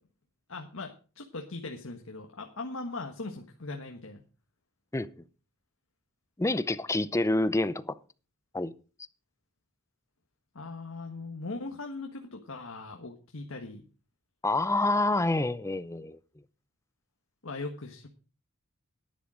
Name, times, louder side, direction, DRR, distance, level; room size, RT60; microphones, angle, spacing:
voice 1, 0.5-4.2 10.5-13.8 17.4-18.1, left 3 dB, 75° left, 1.5 m, -39 dB
voice 2, 6.4-8.0 8.5-8.7 14.4-16.2, left 2 dB, 15° left, 0.6 m, -27 dB
11.5 x 10.5 x 5.0 m
head